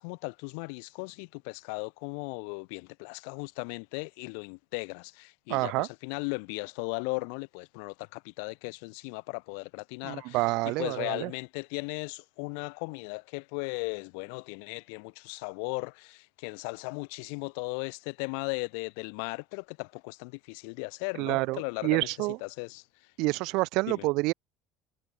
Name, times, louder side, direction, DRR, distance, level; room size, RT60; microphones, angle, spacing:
voice 1, 0.0-10.4 10.8-22.8 23.9-24.1, left 39 dB, 75° left, 0.4 m, -37 dB
voice 2, 5.5-5.9 10.0-11.3 21.2-22.4 23.2-24.3, right 23 dB, 70° right, 0.5 m, -28 dB
hypercardioid pair, 80°, 0 cm